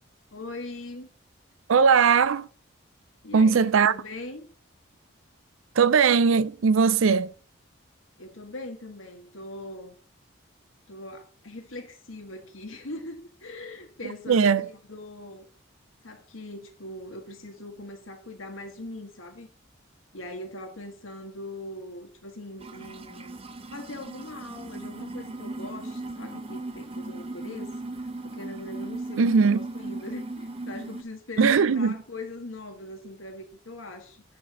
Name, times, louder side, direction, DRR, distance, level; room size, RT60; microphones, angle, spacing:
voice 1, 0.3-1.1 3.2-4.5 8.2-9.9 10.9-15.5 16.0-19.5 20.1-23.3 23.7-27.7 28.2-34.2, left 2 dB, 85° left, 1.6 m, -41 dB
voice 2, 1.7-2.5 3.3-3.9 5.8-7.3 14.0-14.7 29.2-29.7 31.4-32.0, right 5 dB, 85° right, 0.5 m, -20 dB
sound 1, 22.6-31.0, right 2 dB, 30° right, 0.6 m, -37 dB
8.5 x 4.2 x 6.1 m
head